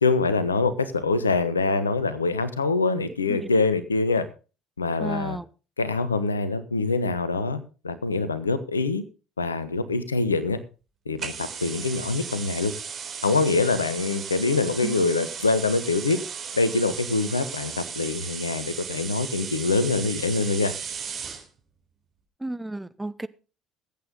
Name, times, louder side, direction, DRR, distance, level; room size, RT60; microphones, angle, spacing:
voice 1, 0.0-4.3 4.8-5.4 5.8-9.0 9.4-10.6 11.1-12.7 13.2-16.2 16.5-20.7, left 3 dB, 80° left, 1.1 m, -24 dB
voice 2, 2.9-3.5 5.0-5.5 14.8-15.0 22.4-23.3, right 2 dB, 10° right, 0.8 m, -33 dB
sound 1, 11.2-21.5, right 6 dB, 40° right, 4.0 m, -36 dB
20.5 x 8.6 x 3.9 m
figure-of-eight pair, 60°, 0 cm